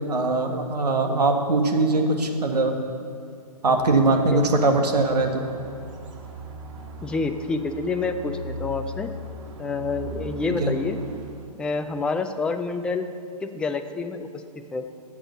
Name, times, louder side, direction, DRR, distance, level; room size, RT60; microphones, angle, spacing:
voice 1, 0.1-2.7 3.6-5.4 10.6-10.7, right 3 dB, 75° right, 4 dB, 1.7 m, -21 dB
sound 1, 3.8-11.5, right 1 dB, 50° right, 1.6 m, -38 dB
voice 2, 7.0-9.1 9.6-11.0 11.6-13.1 13.4-14.4 14.7-14.8, left 4 dB, 5° left, 7 dB, 0.4 m, -28 dB
11.0 x 8.2 x 6.7 m, 2.4 s
hypercardioid pair, 135°, 20 cm